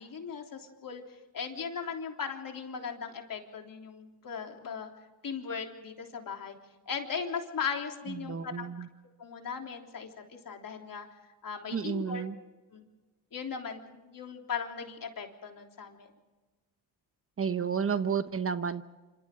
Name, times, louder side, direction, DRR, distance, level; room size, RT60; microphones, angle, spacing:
voice 1, 0.0-4.9 5.2-6.5 6.9-8.7 9.2-11.1 11.4-12.2 12.7-12.8 13.3-16.1, left 6 dB, 50° left, 3 dB, 3.5 m, -38 dB
voice 2, 8.2-8.9 11.7-12.3 17.4-18.8, right 6 dB, 30° right, 11 dB, 1.0 m, -31 dB
27.0 x 26.5 x 3.8 m, 1.2 s
cardioid pair, 75°, 42 cm